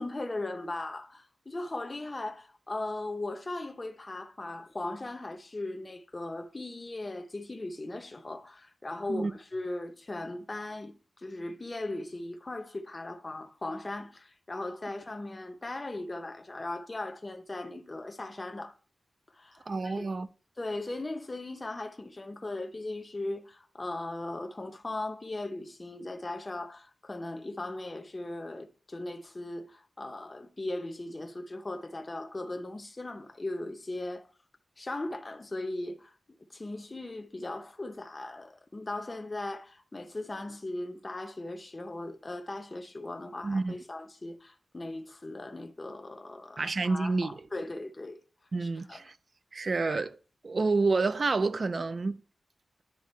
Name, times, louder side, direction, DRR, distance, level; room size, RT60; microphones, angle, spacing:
voice 1, 0.0-18.7 19.3-20.1 20.6-34.3 34.8-36.1 36.5-48.2 48.6-49.0, left 2 dB, 25° left, 0.7 m, -38 dB
voice 2, 19.7-20.3 43.4-43.7 46.6-47.3 48.5-49.1 49.5-50.2 50.4-52.2, right 3 dB, 40° right, 0.4 m, -28 dB
10.5 x 3.7 x 3.1 m
wide cardioid pair, 145°, 0 cm